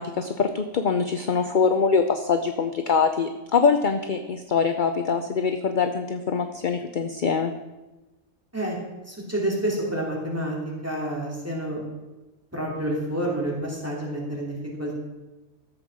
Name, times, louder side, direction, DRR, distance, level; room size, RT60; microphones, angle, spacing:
voice 1, 0.0-7.5, left 5 dB, 45° left, 7 dB, 0.7 m, -23 dB
voice 2, 9.1-11.9 12.5-15.0, right 1 dB, 10° right, -4 dB, 3.4 m, -29 dB
13.5 x 8.0 x 6.2 m, 1.1 s
omnidirectional pair, 1.4 m